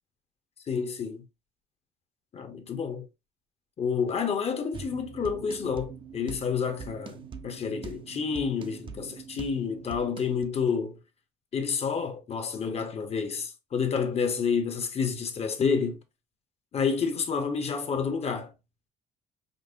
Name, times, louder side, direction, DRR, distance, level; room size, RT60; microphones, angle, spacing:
voice 1, 0.7-1.2 2.3-3.1 3.8-11.0 11.5-16.0 16.7-18.5, left 6 dB, 40° left, 0.7 m, -29 dB
sound 1, 4.7-10.4, right 6 dB, 30° right, 0.4 m, -43 dB
5.2 x 2.0 x 2.5 m
cardioid pair, 110°, 17 cm